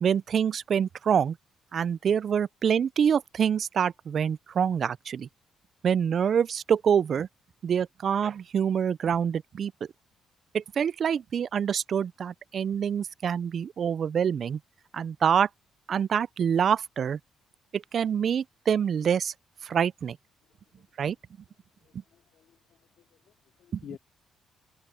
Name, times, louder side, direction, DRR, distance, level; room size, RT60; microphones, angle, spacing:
voice 1, 0.0-1.4 1.7-5.3 5.8-7.3 7.6-9.7 10.5-14.6 14.9-15.5 15.9-17.2 17.7-19.3 19.6-20.2 21.0-21.2 23.7-23.8, right 7 dB, 55° right, 0.4 m, -26 dB
voice 2, 21.8-23.3 23.6-24.0, left 9 dB, 70° left, 2.8 m, -50 dB
open air
cardioid pair, 90°, 0 cm